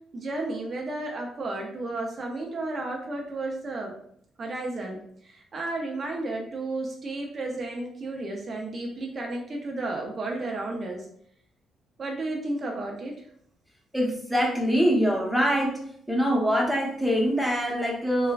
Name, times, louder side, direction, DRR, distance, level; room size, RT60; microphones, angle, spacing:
voice 1, 0.1-4.0 4.4-11.1 12.0-13.1, right 2 dB, 45° right, 1 dB, 0.5 m, -33 dB
voice 2, 13.9-15.8 16.1-18.3, equal, ahead, -1 dB, 0.8 m, -24 dB
3.2 x 2.1 x 2.4 m, 0.66 s
cardioid pair, 90°, 0 cm